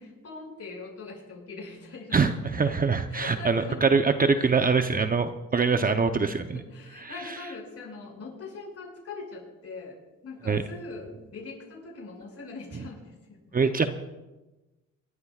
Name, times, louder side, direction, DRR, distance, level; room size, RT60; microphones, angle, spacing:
voice 1, 0.0-2.2 3.1-3.9 4.4-4.5 6.5-10.0 10.2-13.4, left 3 dB, 50° left, -1 dB, 6.4 m, -42 dB
voice 2, 2.1-6.6 10.5-10.6 13.5-13.9, right 5 dB, 30° right, 8 dB, 0.8 m, -23 dB
27.0 x 13.0 x 2.5 m, 1.1 s
cardioid pair, 90°, 30 cm